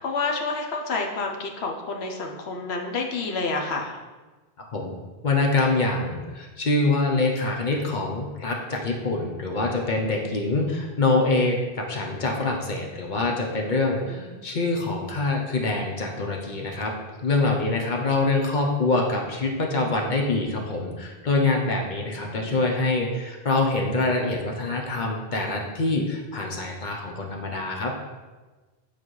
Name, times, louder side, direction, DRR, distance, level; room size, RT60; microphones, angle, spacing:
voice 1, 0.0-3.9 10.2-10.4 14.0-14.3 22.2-22.6, left 3 dB, 90° left, 2 dB, 1.1 m, -29 dB
voice 2, 5.2-16.9 17.2-27.9, left 2 dB, 50° left, 0 dB, 0.9 m, -25 dB
8.6 x 4.1 x 3.1 m, 1.3 s
omnidirectional pair, 1.0 m